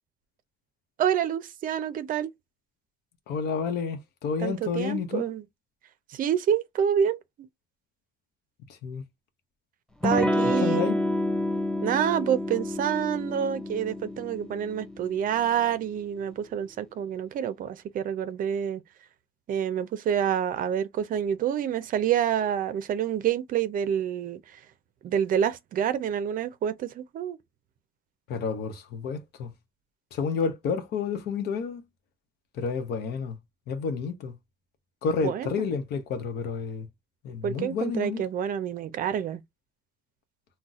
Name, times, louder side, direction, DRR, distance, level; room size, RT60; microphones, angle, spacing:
voice 1, 1.0-2.3 4.4-5.4 6.1-7.5 10.0-10.9 11.8-18.8 19.5-24.6 25.0-27.4 35.2-35.7 37.4-39.4, right 9 dB, 55° right, 0.5 m, -28 dB
voice 2, 3.3-5.3 8.8-9.0 10.4-11.0 28.3-29.5 30.1-31.8 32.5-33.4 33.7-34.4 35.0-36.9 37.2-38.3, left 5 dB, 70° left, 0.8 m, -30 dB
Electric guitar / Strum, 10.0-15.4, left 1 dB, 5° left, 0.5 m, -29 dB
3.9 x 2.1 x 2.4 m
cardioid pair, 110°, 17 cm